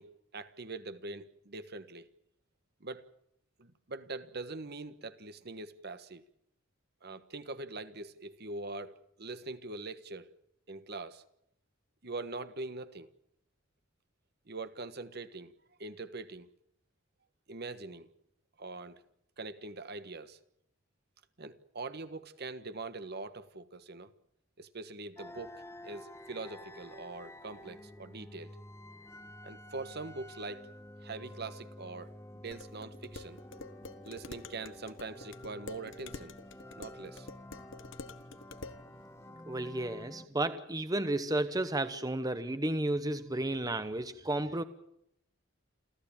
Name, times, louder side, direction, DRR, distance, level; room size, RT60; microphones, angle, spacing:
voice 1, 0.0-2.1 2.8-3.1 3.6-6.2 7.0-10.3 10.7-11.2 12.0-13.1 14.5-15.5 15.8-16.5 17.5-18.1 18.6-19.0 19.4-20.4 21.4-24.1 24.6-28.6 29.4-30.7 31.0-33.4 34.0-36.4 36.8-37.3, right 3 dB, 55° right, 1.4 m, -43 dB
sound 1, 25.2-40.3, left 1 dB, 15° left, 1.3 m, -50 dB
Dishes pots and pans, 32.5-38.8, left 3 dB, 70° left, 1.3 m, -48 dB
voice 2, 39.5-44.6, right 1 dB, 20° right, 1.0 m, -32 dB
28.5 x 14.5 x 8.8 m
head